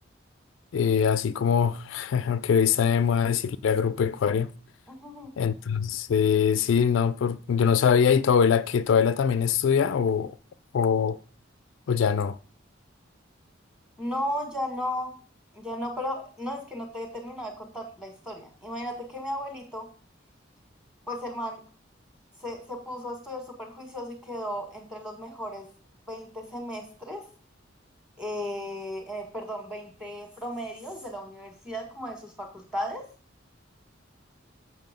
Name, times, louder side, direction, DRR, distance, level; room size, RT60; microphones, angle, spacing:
voice 1, 0.7-4.5 5.4-10.3 10.7-11.2 11.9-12.4, left 7 dB, 75° left, 0.3 m, -23 dB
voice 2, 4.9-5.3 14.0-15.1 15.5-19.9 21.1-21.6 22.4-25.7 26.1-27.2 28.2-33.0, equal, 5° right, 1.7 m, -35 dB
7.5 x 5.9 x 5.2 m
head